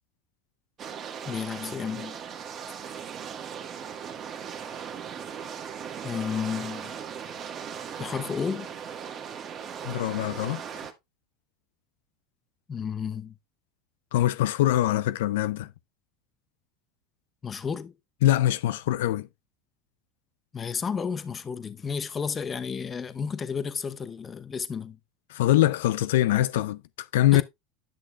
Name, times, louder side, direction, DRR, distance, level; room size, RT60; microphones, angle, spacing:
sound 1, 0.8-10.9, right 7 dB, 40° right, 1.4 m, -38 dB
voice 1, 1.2-2.2 6.0-6.9 8.0-8.7 12.7-13.4 17.4-17.9 20.5-25.0 27.3-27.4, left 6 dB, 25° left, 0.8 m, -32 dB
voice 2, 9.8-10.6 14.1-15.7 18.2-19.3 25.3-27.4, left 14 dB, 85° left, 0.3 m, -23 dB
10.0 x 6.3 x 2.3 m
supercardioid pair, 105°, 0 cm